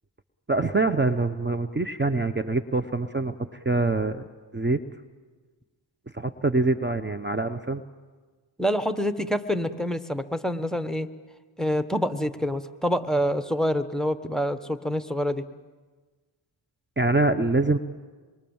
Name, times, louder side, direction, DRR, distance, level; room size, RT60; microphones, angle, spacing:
voice 1, 0.5-3.4 3.6-4.2 4.5-4.8 6.1-7.8 17.0-17.8, right 3 dB, 20° right, 9 dB, 1.0 m, -24 dB
voice 2, 8.6-11.1 11.6-15.4, equal, ahead, 10 dB, 1.3 m, -26 dB
26.5 x 22.5 x 7.3 m, 1.4 s
cardioid pair, 55°, 48 cm